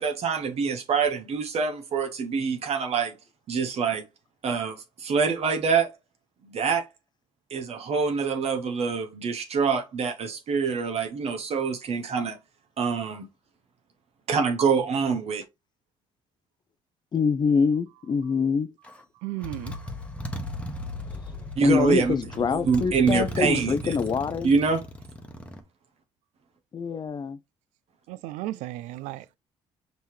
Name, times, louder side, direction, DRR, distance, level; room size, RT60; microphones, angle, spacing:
voice 1, 0.0-3.1 3.5-4.0 4.4-5.9 6.4-6.9 7.5-12.4 12.8-13.3 14.3-15.4 21.6-22.1 22.7-24.0 24.4-24.8, right 5 dB, 55° right, 1.0 m, -25 dB
voice 2, 17.1-18.7 21.1-21.2 21.6-24.5 26.7-27.4, left 5 dB, 35° left, 0.4 m, -25 dB
Motorcycle, 18.8-19.0 19.4-25.6, left 1 dB, 10° left, 1.1 m, -37 dB
voice 3, 19.2-19.8 28.1-29.4, right 16 dB, 85° right, 0.4 m, -34 dB
5.4 x 2.9 x 3.1 m
supercardioid pair, 65°, 12 cm